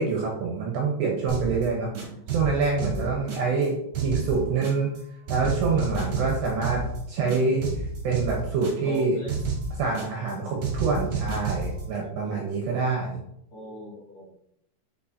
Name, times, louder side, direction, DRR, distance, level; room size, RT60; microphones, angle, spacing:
voice 1, 0.0-1.9 2.3-3.8 4.0-4.9 5.3-7.7 8.0-9.2 9.7-13.2, right 4 dB, 75° right, -1 dB, 2.7 m, -26 dB
sound 1, 1.3-1.6 1.9-3.7 3.9-5.0 5.3-7.0 7.3-9.0 9.3-10.3 10.6-11.8, right 4 dB, 50° right, 2.2 m, -30 dB
voice 2, 5.4-5.8 8.8-9.5 12.0-12.4 13.5-14.3, right 1 dB, 50° left, -8 dB, 3.1 m, -40 dB
8.3 x 6.3 x 2.8 m, 0.77 s
omnidirectional pair, 5.9 m